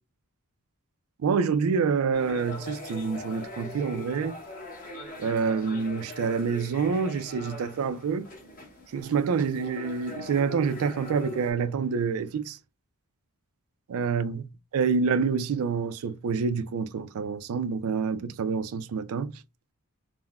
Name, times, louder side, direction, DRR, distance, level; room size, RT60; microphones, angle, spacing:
voice 1, 1.2-4.4 5.2-8.3 8.9-12.6 13.9-14.5 14.7-19.3, right 5 dB, 65° right, 0.4 m, -27 dB
sound 1, 2.1-11.5, left 1 dB, 40° left, 1.0 m, -42 dB
3.5 x 2.1 x 2.3 m
head